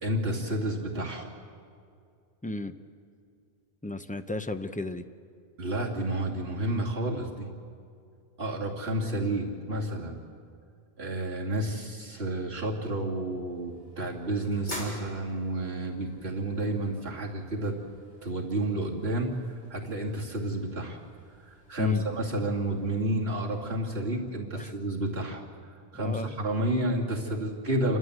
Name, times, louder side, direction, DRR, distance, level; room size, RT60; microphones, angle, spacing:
voice 1, 0.0-1.3 5.6-7.5 8.4-10.2 11.0-17.7 18.2-19.3 19.7-21.0 21.5-25.4 25.9-28.0, right 1 dB, 75° right, -2 dB, 2.7 m, -30 dB
voice 2, 2.4-2.7 3.8-5.0 21.8-22.0 24.6-24.7 26.0-26.3, left 2 dB, 10° left, 8 dB, 0.6 m, -33 dB
sound 1, 13.2-24.1, equal, 45° left, 4.1 m, -48 dB
29.0 x 13.0 x 8.0 m, 2.4 s
omnidirectional pair, 1.0 m